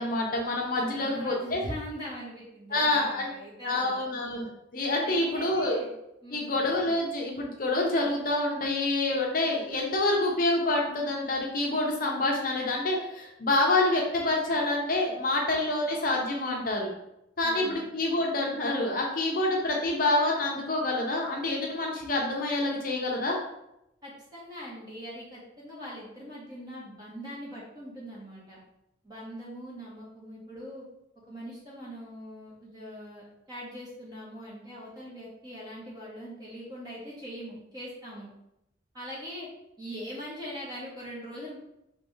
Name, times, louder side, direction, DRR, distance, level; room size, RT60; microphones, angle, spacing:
voice 1, 0.0-1.6 2.7-3.3 3.6-5.8 6.3-16.9 17.4-23.4, left 2 dB, 45° left, -1 dB, 0.6 m, -27 dB
voice 2, 0.8-4.0 5.0-5.9 6.2-6.6 17.4-17.8 24.0-28.6 29.0-30.8 31.3-38.3 38.9-39.5 39.8-41.6, equal, 20° right, -6 dB, 1.1 m, -42 dB
3.3 x 3.0 x 3.2 m, 0.85 s
head